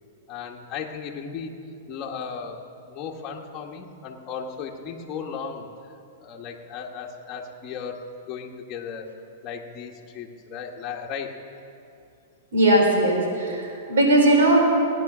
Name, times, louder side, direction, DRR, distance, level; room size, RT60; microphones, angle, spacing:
voice 1, 0.3-1.6 1.9-2.6 2.9-5.7 6.2-9.1 9.4-11.3, left 6 dB, 30° left, 0 dB, 1.4 m, -35 dB
voice 2, 12.5-14.6, right 1 dB, 85° right, -1 dB, 4.0 m, -19 dB
16.5 x 9.8 x 6.1 m, 2.6 s
hypercardioid pair, 145°, 0 cm